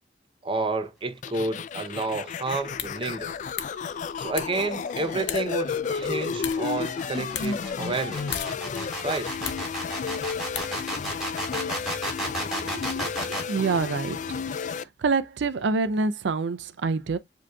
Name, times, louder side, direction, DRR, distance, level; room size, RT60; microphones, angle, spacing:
voice 1, 0.4-3.3 4.2-8.4 9.0-9.3, right 3 dB, 30° right, 0.5 m, -30 dB
sound 1, 1.2-14.8, left 5 dB, 45° left, 0.3 m, -32 dB
sound 2, 2.6-11.3, left 10 dB, 80° left, 0.7 m, -40 dB
sound 3, 4.2-13.5, right 1 dB, ahead, 3.1 m, -33 dB
voice 2, 12.5-14.2 14.6-17.2, right 4 dB, 85° right, 0.4 m, -27 dB
7.5 x 2.8 x 2.2 m
head